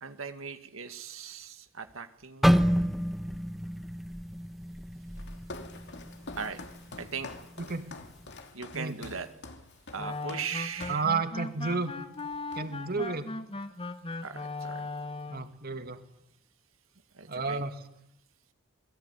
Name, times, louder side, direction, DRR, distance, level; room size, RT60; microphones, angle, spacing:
voice 1, 0.0-3.0 6.4-6.6 7.0-7.3 8.5-9.3 9.9-11.1 14.2-14.8 17.1-17.6, right 5 dB, 80° right, 8 dB, 2.0 m, -39 dB
sound 1, 2.4-6.5 6.8-7.1 7.7-8.1, equal, ahead, 1.3 m, -28 dB
Walk footsteps, 5.1-11.1 11.6-11.9 12.1-12.9, left 3 dB, 60° left, 2.8 m, -46 dB
sound 2, 10.0-15.5, left 3 dB, 25° left, 1.4 m, -38 dB
voice 2, 10.9-11.9 12.5-13.3 15.3-16.0 17.3-17.7, right 4 dB, 50° right, 9 dB, 2.5 m, -31 dB
28.0 x 21.5 x 9.8 m, 0.79 s
head